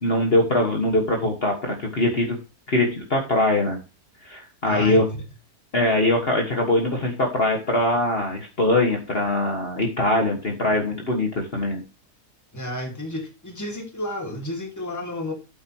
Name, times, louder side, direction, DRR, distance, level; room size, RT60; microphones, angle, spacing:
voice 1, 0.0-2.4 2.7-3.8 4.2-5.0 5.7-11.8, left 1 dB, 40° left, 1.7 m, -22 dB
voice 2, 4.6-5.2 12.5-15.3, left 1 dB, 10° left, 1.9 m, -31 dB
9.6 x 8.1 x 2.9 m
omnidirectional pair, 1.7 m